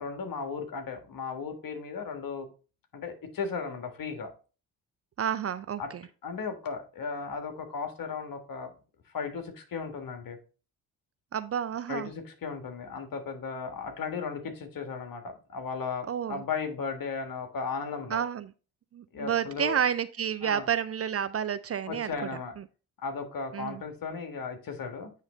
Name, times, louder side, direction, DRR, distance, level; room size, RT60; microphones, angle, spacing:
voice 1, 0.0-2.5 2.9-4.3 5.8-5.9 6.2-8.7 9.1-10.4 11.9-18.2 19.1-19.8 20.4-20.7 21.9-22.6 23.0-25.1, left 5 dB, 55° left, 6 dB, 1.6 m, -36 dB
voice 2, 5.2-5.8 11.3-12.1 16.1-16.4 18.1-18.5 18.9-22.1 23.5-23.8, right 8 dB, 35° right, 13 dB, 0.4 m, -30 dB
9.1 x 3.2 x 3.7 m, 0.34 s
hypercardioid pair, 50°, 41 cm